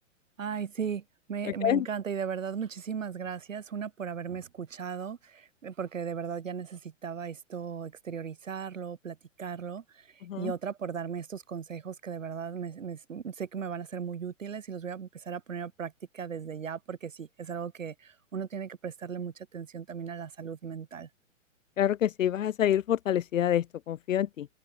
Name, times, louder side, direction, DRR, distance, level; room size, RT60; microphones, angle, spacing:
voice 1, 0.4-21.1, right 7 dB, 85° right, 4.0 m, -37 dB
voice 2, 21.8-24.5, left 10 dB, 85° left, 0.6 m, -27 dB
hypercardioid pair, 130°, 38 cm